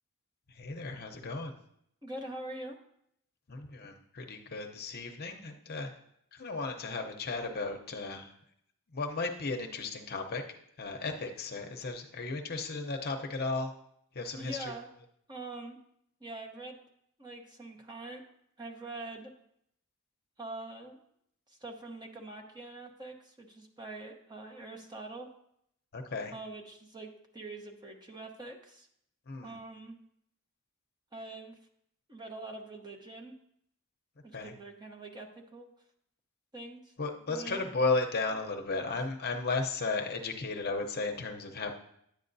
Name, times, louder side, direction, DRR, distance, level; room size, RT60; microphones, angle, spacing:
voice 1, 0.5-1.5 3.5-5.9 6.3-8.3 8.9-10.4 10.8-13.7 14.1-14.7 25.9-26.3 29.3-29.6 34.3-34.5 37.0-41.7, left 3 dB, 45° left, 4 dB, 0.7 m, -34 dB
voice 2, 2.0-2.8 14.3-14.9 15.3-15.8 16.2-16.8 17.2-18.2 18.6-19.3 20.4-21.0 21.5-25.3 26.3-28.9 29.4-30.0 31.1-31.5 32.1-33.3 34.2-35.7 36.5-36.9 37.3-37.7 38.7-38.9, right 2 dB, 20° right, 1 dB, 0.9 m, -44 dB
10.5 x 8.8 x 2.7 m, 0.73 s
head